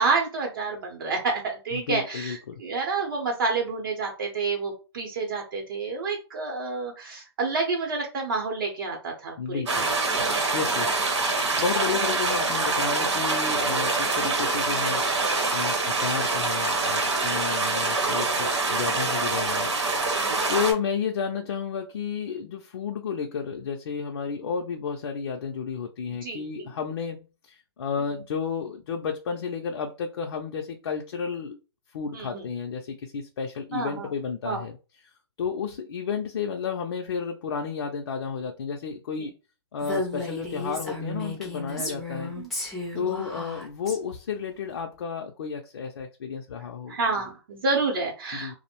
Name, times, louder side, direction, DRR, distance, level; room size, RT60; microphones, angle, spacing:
voice 1, 0.0-9.9 26.2-26.7 32.1-32.4 33.7-34.1 34.4-34.6 39.2-39.3 41.8-42.5 42.9-43.3 46.9-48.5, right 4 dB, 50° right, 0.7 m, -29 dB
voice 2, 1.7-2.6 9.4-9.9 10.2-10.9 11.6-15.1 15.5-31.6 31.9-34.8 35.4-39.3 39.7-42.6 42.9-47.0 48.3-48.5, left 6 dB, 55° left, 0.4 m, -32 dB
sound 1, 9.7-20.7, right 3 dB, 85° right, 0.9 m, -25 dB
Female speech woman speaking, 39.8-44.0, left 2 dB, ahead, 0.5 m, -34 dB
2.5 x 2.0 x 2.8 m
hypercardioid pair, 155°, 14 cm